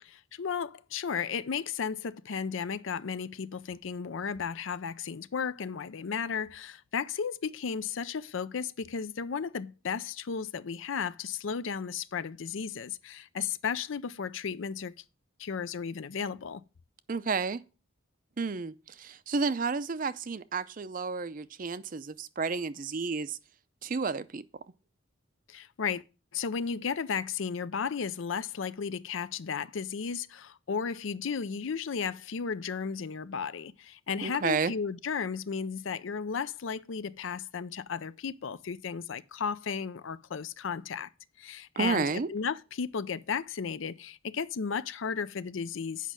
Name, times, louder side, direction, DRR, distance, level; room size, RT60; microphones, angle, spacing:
voice 1, 0.0-14.9 15.4-16.6 25.5-26.0 26.3-41.1 41.4-46.1, left 6 dB, 70° left, 0.5 m, -34 dB
voice 2, 17.1-17.6 18.4-23.4 23.8-24.4 34.2-34.7 41.8-42.3, right 4 dB, 40° right, 0.5 m, -31 dB
8.3 x 5.4 x 6.1 m
head